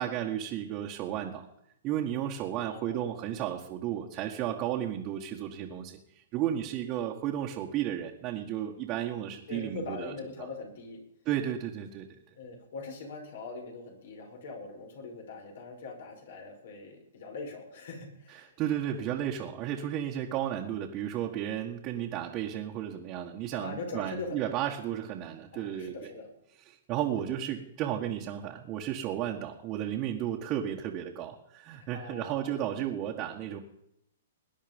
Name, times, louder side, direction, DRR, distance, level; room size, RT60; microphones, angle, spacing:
voice 1, 0.0-1.5 1.8-6.0 6.3-10.1 10.4-10.5 11.2-12.1 18.6-25.9 26.7-33.6, right 11 dB, 30° right, -1 dB, 1.7 m, -33 dB
voice 2, 2.6-3.3 9.5-11.0 12.3-18.5 23.5-24.5 25.5-26.3 27.2-27.4 31.7-32.6, left 3 dB, 70° left, 2 dB, 5.8 m, -42 dB
20.5 x 10.0 x 5.4 m, 0.78 s
hypercardioid pair, 140°, 0 cm